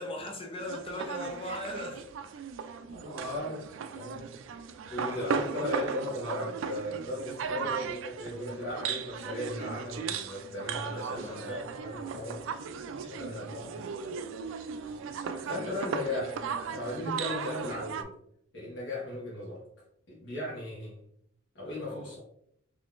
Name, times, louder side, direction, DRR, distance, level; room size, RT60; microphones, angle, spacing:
voice 1, 0.0-2.3 4.9-5.5 10.5-11.7 12.1-12.2 12.9-13.2 14.5-15.0 15.6-16.1 21.6-22.1, left 1 dB, 30° left, 2 dB, 0.7 m, -41 dB
sound 1, 0.6-18.0, right 6 dB, 85° right, 0.3 m, -37 dB
voice 2, 2.9-3.7 3.9-4.3 4.9-12.5 13.1-13.7 15.1-18.1 18.5-19.6 20.1-21.0 21.5-22.2, left 1 dB, 70° left, -6 dB, 1.2 m, -37 dB
3.7 x 3.0 x 2.4 m, 0.71 s
head